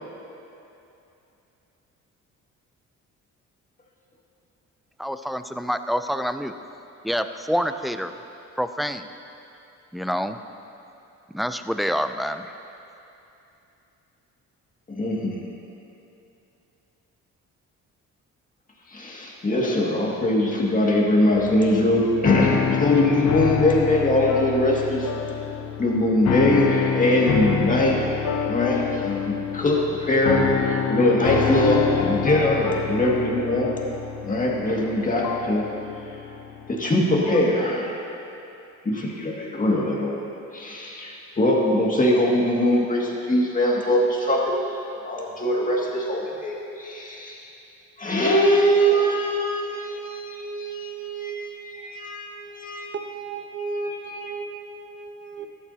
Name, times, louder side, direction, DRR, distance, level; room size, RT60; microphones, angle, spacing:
voice 1, 5.0-6.5 7.0-8.1 8.6-9.1 9.9-10.4 11.3-12.5, equal, ahead, 9 dB, 0.4 m, -27 dB
voice 2, 14.9-15.3 18.9-25.1 25.8-28.0 28.5-33.7 34.2-35.6 36.7-38.0 38.8-40.2 40.5-44.6 45.0-47.4 48.0-53.0 53.6-54.2, left 1 dB, 25° left, -3 dB, 2.1 m, -22 dB
sound 1, 21.4-37.6, left 7 dB, 70° left, 0.8 m, -27 dB
voice 3, 52.9-55.5, right 3 dB, 40° right, 7 dB, 0.8 m, -34 dB
14.0 x 11.5 x 2.8 m, 2.8 s
cardioid pair, 90°, 30 cm